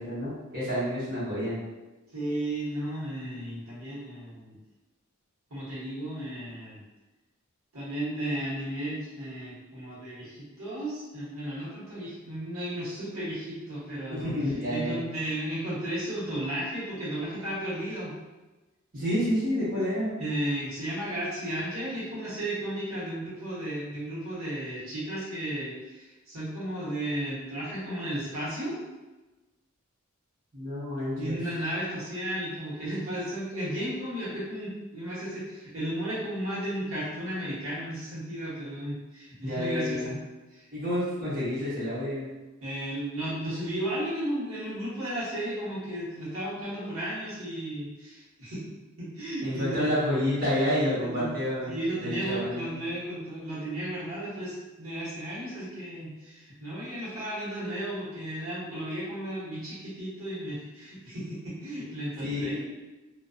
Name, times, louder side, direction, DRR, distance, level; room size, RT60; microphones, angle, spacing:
voice 1, 0.0-1.6 14.1-15.0 18.9-20.2 30.5-31.4 39.4-40.1 40.7-42.4 49.4-51.7 52.0-52.7 62.2-62.6, left 1 dB, 45° right, -10 dB, 1.0 m, -29 dB
voice 2, 2.1-4.6 5.5-6.8 7.7-14.3 14.7-18.2 20.2-28.8 31.2-40.2 40.5-40.7 42.6-49.9 50.7-51.4 51.7-62.6, right 1 dB, 75° right, -8 dB, 1.0 m, -34 dB
2.5 x 2.2 x 2.3 m, 1.1 s
head